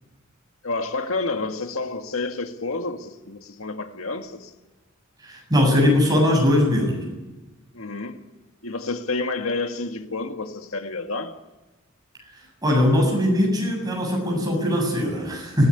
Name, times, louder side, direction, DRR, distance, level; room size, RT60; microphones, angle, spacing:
voice 1, 0.6-4.5 7.7-8.2 8.6-11.4, left 3 dB, 85° left, 1.8 m, -29 dB
voice 2, 5.2-7.1 12.6-15.7, left 1 dB, 20° right, 7.5 m, -20 dB
25.0 x 17.5 x 9.9 m
head